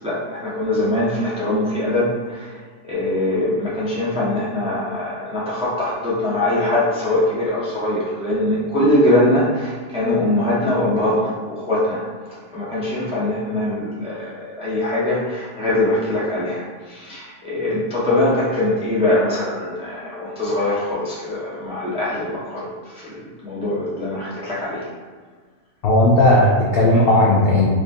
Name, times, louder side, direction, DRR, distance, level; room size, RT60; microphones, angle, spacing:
voice 1, 0.0-2.5 2.8-22.7 22.9-24.9, left 1 dB, 5° right, -8 dB, 0.4 m, -22 dB
voice 2, 25.8-27.7, left 1 dB, 70° left, -4 dB, 0.5 m, -15 dB
4.9 x 2.4 x 2.6 m, 1.5 s
omnidirectional pair, 1.6 m